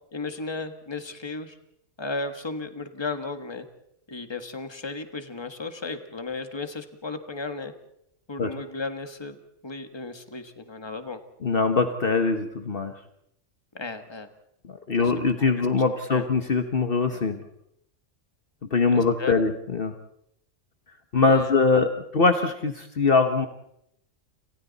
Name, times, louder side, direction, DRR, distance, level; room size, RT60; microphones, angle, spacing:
voice 1, 0.1-1.6 2.0-3.7 4.1-7.7 8.3-9.4 9.6-11.2 13.7-14.3 15.4-15.7 16.1-16.2 18.9-19.4 21.3-21.8, left 3 dB, 20° left, 7 dB, 1.6 m, -35 dB
voice 2, 11.4-12.9 14.6-17.4 18.7-19.9 21.1-23.5, left 4 dB, 50° left, 7 dB, 1.3 m, -22 dB
29.5 x 27.0 x 4.1 m, 0.75 s
omnidirectional pair, 1.3 m